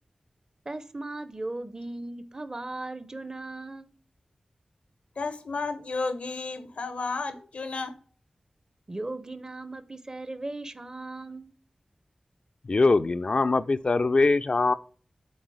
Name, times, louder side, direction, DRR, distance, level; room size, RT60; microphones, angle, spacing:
voice 1, 0.6-3.9 8.9-11.5, right 2 dB, 35° right, 0.8 m, -37 dB
voice 2, 5.2-7.9, left 3 dB, 85° left, 0.8 m, -32 dB
voice 3, 12.7-14.7, left 3 dB, 55° left, 0.4 m, -22 dB
8.0 x 3.7 x 4.8 m
wide cardioid pair, 55°, 2 cm